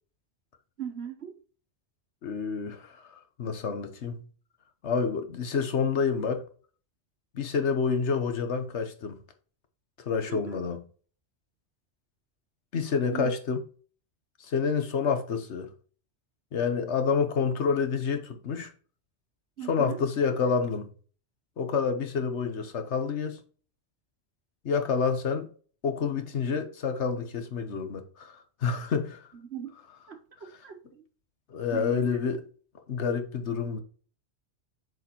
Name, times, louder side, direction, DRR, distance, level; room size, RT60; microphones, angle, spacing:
voice 1, 0.8-1.3 10.3-10.6 13.0-13.3 19.6-20.0 29.4-29.7 30.1-31.1 31.7-32.2, right 9 dB, 70° right, 1.4 m, -39 dB
voice 2, 2.2-4.2 4.8-6.4 7.3-9.2 10.1-10.8 12.7-13.6 14.4-15.7 16.5-18.7 19.7-20.9 21.6-23.4 24.6-25.5 25.8-29.2 31.5-32.4 32.9-33.8, left 5 dB, 80° left, 1.4 m, -28 dB
7.8 x 4.9 x 3.0 m
omnidirectional pair, 1.1 m